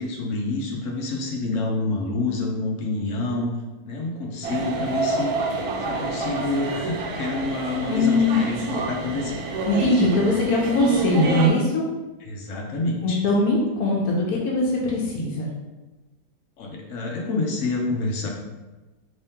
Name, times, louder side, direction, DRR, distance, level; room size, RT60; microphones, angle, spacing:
voice 1, 0.0-3.5 3.8-5.4 5.9-9.4 12.2-13.2 16.6-18.3, left 2 dB, 65° left, 1 dB, 0.9 m, -28 dB
sound 1, 4.4-11.5, right 3 dB, 90° right, 1.1 m, -28 dB
voice 2, 7.9-8.4 9.7-11.8 13.0-15.5, left 2 dB, 80° left, -3 dB, 1.1 m, -21 dB
3.4 x 3.1 x 2.8 m, 1.2 s
omnidirectional pair, 1.5 m